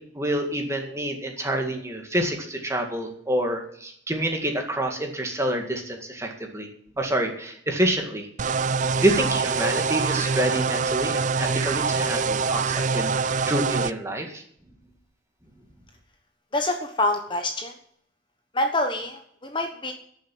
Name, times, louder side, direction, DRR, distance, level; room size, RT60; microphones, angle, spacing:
voice 1, 0.1-6.7 7.0-8.3 9.0-13.1 13.5-14.4, right 1 dB, 15° right, 3 dB, 2.0 m, -27 dB
sound 1, 8.4-13.9, right 5 dB, 40° right, 0.4 m, -25 dB
voice 2, 16.5-17.7 18.5-19.9, left 2 dB, 25° left, 5 dB, 1.1 m, -26 dB
12.0 x 7.1 x 9.2 m, 0.66 s
head